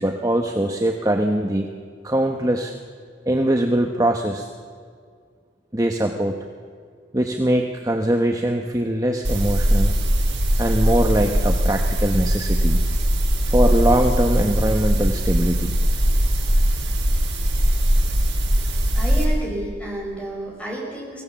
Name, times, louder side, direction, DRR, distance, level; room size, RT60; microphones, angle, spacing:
voice 1, 0.0-1.7 2.0-2.7 3.3-4.5 5.7-6.3 7.1-10.0 10.6-12.8 13.5-15.8, right 1 dB, 20° right, 3 dB, 0.9 m, -22 dB
sound 1, 9.2-19.2, equal, 80° right, 6.8 m, -20 dB
voice 2, 18.9-21.2, right 1 dB, 5° left, -2 dB, 5.1 m, -30 dB
23.5 x 17.0 x 7.0 m, 2.1 s
head